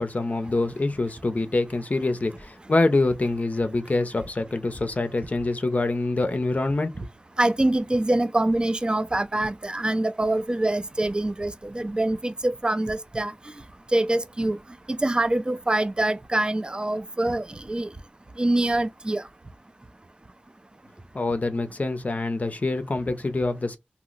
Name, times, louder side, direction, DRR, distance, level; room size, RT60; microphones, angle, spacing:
voice 1, 0.0-6.9 21.1-23.8, left 2 dB, 45° left, 0.5 m, -25 dB
voice 2, 7.4-13.3 13.9-14.6 14.9-17.9 18.4-19.2, right 1 dB, 25° right, 0.4 m, -24 dB
2.8 x 2.0 x 3.8 m
wide cardioid pair, 55°, 4 cm